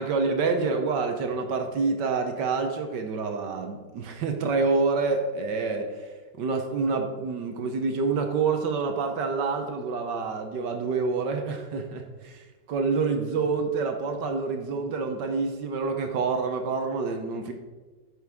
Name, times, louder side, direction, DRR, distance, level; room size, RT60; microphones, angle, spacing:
voice 1, 0.0-17.5, right 4 dB, 70° right, 5 dB, 1.5 m, -27 dB
10.5 x 6.4 x 3.5 m, 1.3 s
omnidirectional pair, 2.0 m